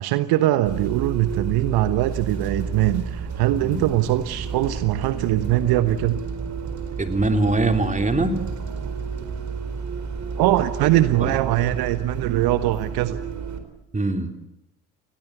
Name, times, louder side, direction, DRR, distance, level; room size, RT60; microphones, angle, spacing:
voice 1, 0.0-6.2 10.4-13.2, right 14 dB, 60° right, 12 dB, 1.2 m, -22 dB
Bus, 0.7-13.6, right 5 dB, 40° right, 4.5 m, -31 dB
voice 2, 7.0-8.4 11.2-11.3 13.9-14.3, right 2 dB, 15° right, 6 dB, 3.6 m, -22 dB
30.0 x 20.5 x 8.2 m, 0.89 s
figure-of-eight pair, 55°, 42 cm